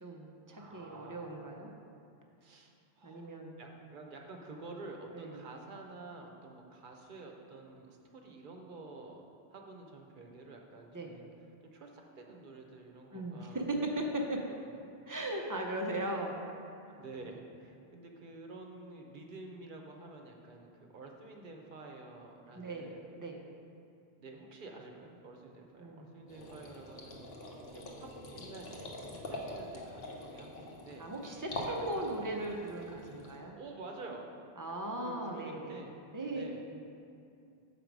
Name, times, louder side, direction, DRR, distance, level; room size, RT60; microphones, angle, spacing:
voice 1, 0.0-1.7 3.0-3.6 4.5-4.6 5.1-5.4 10.9-11.1 13.1-14.4 15.1-16.4 16.8-17.0 22.5-23.4 25.8-26.1 31.0-33.5 34.6-35.8 36.1-36.4 36.7-36.8, right 1 dB, 25° right, 1 dB, 0.5 m, -38 dB
voice 2, 0.5-1.4 2.4-3.3 3.6-9.2 9.5-11.3 11.7-13.9 14.2-14.3 14.8-14.9 16.0-16.1 17.0-23.0 24.2-27.2 27.6-31.1 31.7-32.2 33.6-34.3 35.0-35.9 36.3-36.6, right 3 dB, 55° right, 2 dB, 0.9 m, -50 dB
sound 1, 26.3-33.4, left 1 dB, 65° left, 1.1 m, -44 dB
6.8 x 4.7 x 5.2 m, 2.5 s
omnidirectional pair, 1.1 m